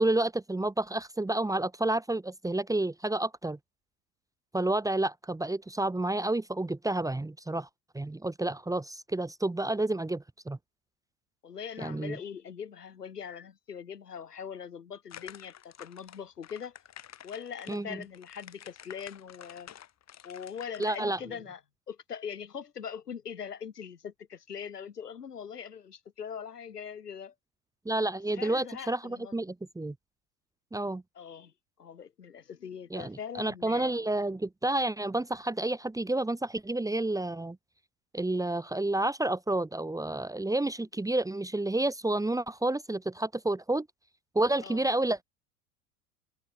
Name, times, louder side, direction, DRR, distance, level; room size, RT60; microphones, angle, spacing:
voice 1, 0.0-3.6 4.5-7.7 7.9-10.6 11.8-12.2 17.7-17.9 20.8-21.2 27.9-29.9 30.7-31.0 32.9-37.6 38.1-43.9 44.4-45.2, right 2 dB, 5° right, 2.1 m, -30 dB
voice 2, 11.4-16.8 17.2-19.7 20.2-21.6 21.9-27.3 28.3-29.4 31.1-31.5 31.8-33.9 44.6-44.9, left 7 dB, 85° left, 3.4 m, -42 dB
sound 1, 15.1-21.0, left 10 dB, 35° left, 5.7 m, -50 dB
figure-of-eight pair, 80°, 46 cm